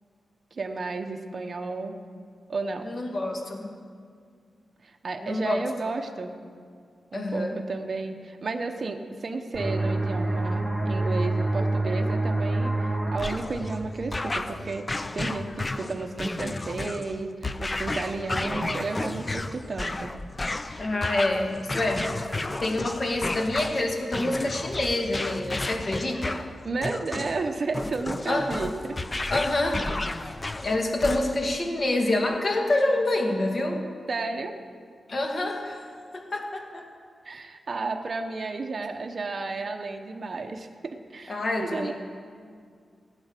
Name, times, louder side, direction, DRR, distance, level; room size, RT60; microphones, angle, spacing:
voice 1, 0.5-2.0 2.5-2.9 4.8-6.3 7.1-20.2 26.6-29.0 34.1-34.5 37.2-41.9, right 3 dB, 45° right, 3 dB, 1.0 m, -32 dB
voice 2, 2.8-3.7 5.2-5.6 7.1-7.6 20.8-22.1 22.6-26.4 28.3-28.5 29.3-29.9 30.6-33.8 35.1-35.8 36.1-36.8 41.3-41.9, left 2 dB, 45° left, 2 dB, 2.0 m, -27 dB
sound 1, 9.5-14.9, right 2 dB, 15° right, 3.5 m, -28 dB
sound 2, 13.2-31.6, left 2 dB, 25° left, 0.5 m, -32 dB
17.0 x 9.1 x 6.7 m, 2.2 s
wide cardioid pair, 110°, 0 cm